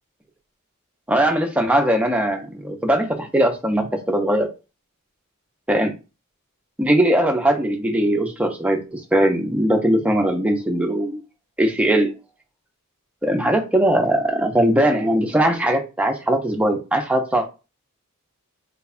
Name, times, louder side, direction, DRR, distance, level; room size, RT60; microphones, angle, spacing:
voice 1, 1.1-4.5 5.7-5.9 6.8-11.2 11.6-12.1 13.2-17.5, right 1 dB, 5° right, 3 dB, 0.4 m, -20 dB
3.5 x 2.1 x 2.4 m, 0.30 s
head